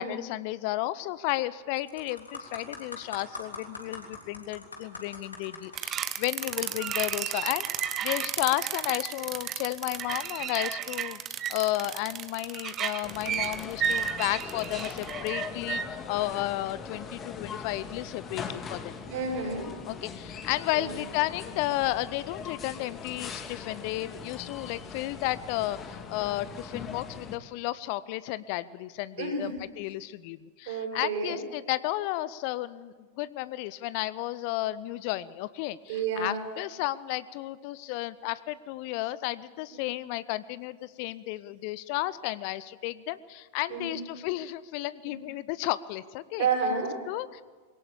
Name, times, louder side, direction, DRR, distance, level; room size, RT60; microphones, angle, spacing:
voice 1, 0.0-11.2 11.5-18.9 19.9-46.5 47.1-47.4, left 16 dB, 45° left, 18 dB, 0.6 m, -33 dB
sound 1, 1.1-1.4 1.8-8.2 8.9-9.0, left 3 dB, 75° left, 3.3 m, -44 dB
sound 2, 5.8-15.8, right 8 dB, 30° right, 1.1 m, -32 dB
sound 3, 13.0-27.4, left 6 dB, 25° left, 2.0 m, -41 dB
voice 2, 19.1-19.7 20.7-20.9 29.2-29.5 30.7-31.4 35.9-36.4 39.7-39.8 43.7-44.0 46.4-46.9, right 5 dB, 55° right, 2 dB, 5.8 m, -30 dB
22.5 x 18.0 x 8.5 m, 1.5 s
figure-of-eight pair, 90°, 0 cm